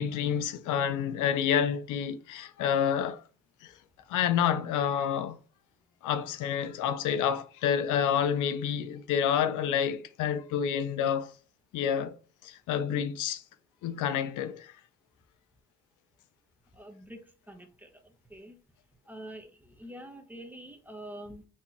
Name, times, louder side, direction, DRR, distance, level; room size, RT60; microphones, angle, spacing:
voice 1, 0.0-3.2 3.6-3.7 4.1-5.4 6.0-11.3 11.7-12.1 12.4-13.4 13.8-14.7, left 8 dB, 85° left, 0.6 m, -28 dB
voice 2, 16.7-18.6 19.0-21.5, right 1 dB, 5° right, 0.9 m, -46 dB
4.3 x 3.5 x 2.9 m
cardioid pair, 90°, 30 cm